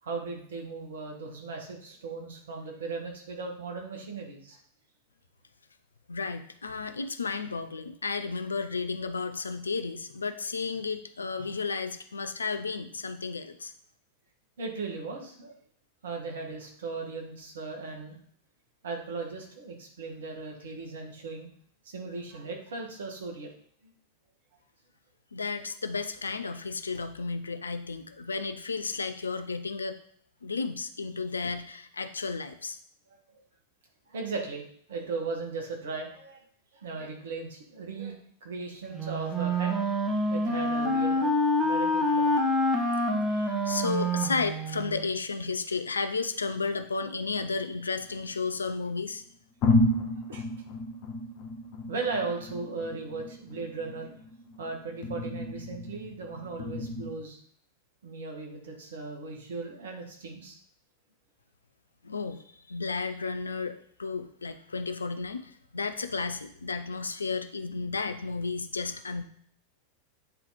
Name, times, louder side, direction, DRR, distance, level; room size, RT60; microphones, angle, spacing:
voice 1, 0.0-4.6 14.6-15.5 16.0-18.2 18.8-21.5 21.8-23.5 34.1-34.6 34.9-36.4 36.7-39.8 40.3-42.3 50.3-50.5 51.9-54.1 54.6-57.4 58.0-60.6, right 4 dB, 60° right, 2 dB, 1.8 m, -37 dB
voice 2, 6.1-13.7 25.3-30.0 30.4-32.8 43.3-49.2 62.0-69.2, left 4 dB, 75° left, 10 dB, 0.6 m, -33 dB
Wind instrument woodwind instrument, 38.9-45.1, equal, 15° right, 1.3 m, -27 dB
sound 1, 47.2-48.5 49.1-49.2 49.6-57.1, left 2 dB, 40° left, 0.9 m, -32 dB
9.0 x 4.0 x 4.2 m, 0.62 s
figure-of-eight pair, 90°, 0 cm